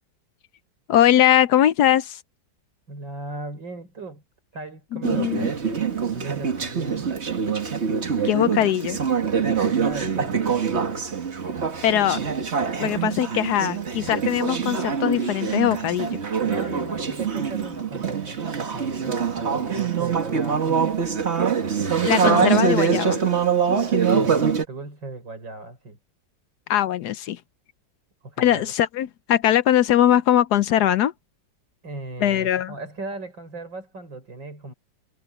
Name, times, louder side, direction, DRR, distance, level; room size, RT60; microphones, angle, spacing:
voice 1, 0.9-2.2 4.9-5.5 8.2-9.0 11.8-12.2 12.8-16.2 22.0-23.2 26.7-27.4 28.4-31.1 32.2-32.7, left 11 dB, 70° left, 1.1 m, -21 dB
voice 2, 2.9-4.2 4.5-5.8 6.1-7.1 9.4-11.3 12.2-12.3 16.4-20.9 23.7-26.0 28.2-28.7 31.8-34.7, right 2 dB, 80° right, 6.7 m, -37 dB
Conversation / Chatter, 5.0-24.6, right 6 dB, 35° right, 1.8 m, -24 dB
omnidirectional pair, 2.0 m